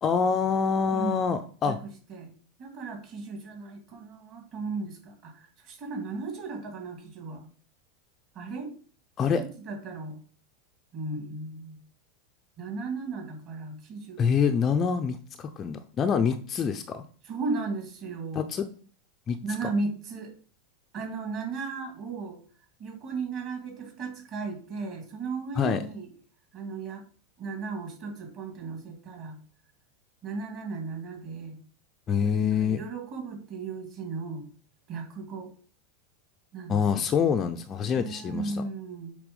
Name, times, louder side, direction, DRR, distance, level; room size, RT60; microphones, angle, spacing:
voice 1, 0.0-1.8 9.2-9.4 14.2-17.0 18.3-18.6 19.3-19.4 25.6-25.8 32.1-32.8 36.7-38.6, left 6 dB, 20° left, 6 dB, 0.4 m, -26 dB
voice 2, 0.9-1.3 1.6-2.3 2.6-7.5 8.3-8.7 9.3-10.2 10.9-11.8 12.6-14.2 17.2-18.5 19.4-20.3 20.9-22.4 22.8-26.1 26.5-27.0 27.4-29.4 30.2-31.6 32.2-32.3 32.6-34.4 34.9-35.5 36.5-37.1 38.0-39.2, right 4 dB, 35° right, 3 dB, 2.2 m, -36 dB
8.1 x 3.4 x 5.3 m, 0.42 s
supercardioid pair, 170°, 0 cm